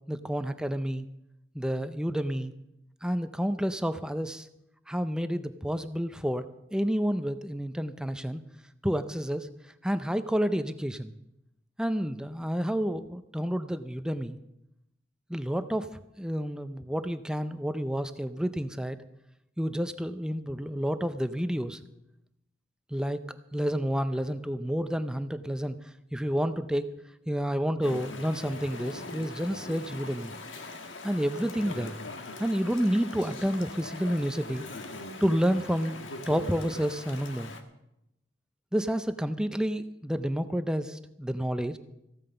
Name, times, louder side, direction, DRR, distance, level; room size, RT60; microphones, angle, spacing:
voice 1, 0.1-1.1 1.5-2.5 3.0-4.5 4.9-8.4 8.8-9.5 9.8-11.1 11.8-14.4 15.3-15.9 16.2-19.0 19.6-21.8 22.9-23.2 23.5-25.7 26.1-26.9 27.3-30.3 31.0-32.0 32.4-34.6 35.2-36.0 36.3-37.5 38.7-41.8, equal, 5° right, 10 dB, 0.5 m, -29 dB
Chatter / Stream, 27.8-37.6, left 2 dB, 85° left, 1.4 m, -42 dB
15.0 x 8.9 x 6.7 m, 0.85 s
head